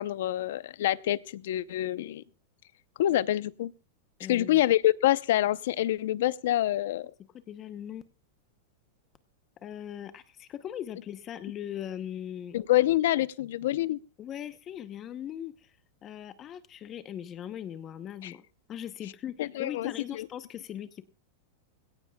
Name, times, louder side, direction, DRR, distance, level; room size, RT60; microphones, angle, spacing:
voice 1, 0.0-2.2 3.0-3.7 4.3-7.1 12.5-14.0 18.2-18.3 19.4-20.3, left 14 dB, 70° left, 17 dB, 0.7 m, -26 dB
voice 2, 4.2-4.6 7.5-8.0 9.6-12.6 14.2-15.7 16.0-18.4 18.7-21.0, left 10 dB, 25° left, 12 dB, 0.8 m, -39 dB
21.0 x 17.0 x 2.3 m, 0.31 s
supercardioid pair, 150°, 0 cm